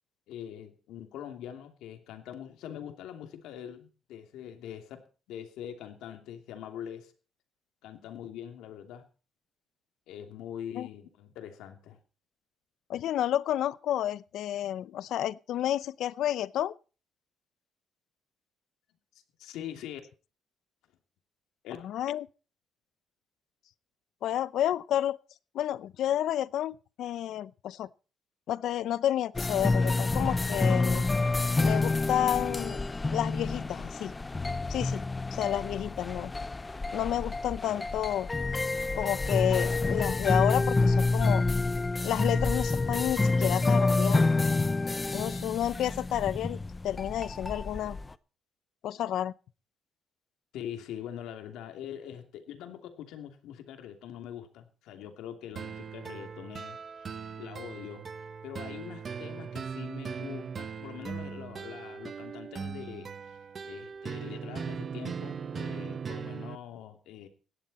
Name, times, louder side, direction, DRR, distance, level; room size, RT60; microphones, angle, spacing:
voice 1, 0.3-7.1 7.8-9.1 10.1-12.0 19.4-20.0 21.6-21.8 39.1-39.2 50.5-57.1 57.4-58.0 58.4-63.4 63.6-67.3, left 10 dB, 90° left, 2.9 m, -43 dB
voice 2, 12.9-16.7 21.8-22.3 24.2-25.2 25.5-27.9 28.5-31.0 31.6-32.8 33.1-34.1 34.7-35.0 35.3-36.3 36.9-38.3 38.9-41.4 42.0-44.3 45.1-46.6 46.8-48.0 48.8-49.3, left 11 dB, 70° left, 0.7 m, -30 dB
sound 1, 29.3-48.1, left 3 dB, 15° left, 0.6 m, -28 dB
sound 2, 55.6-66.6, right 6 dB, 35° right, 0.8 m, -39 dB
17.0 x 11.5 x 4.3 m
cardioid pair, 140°, 0 cm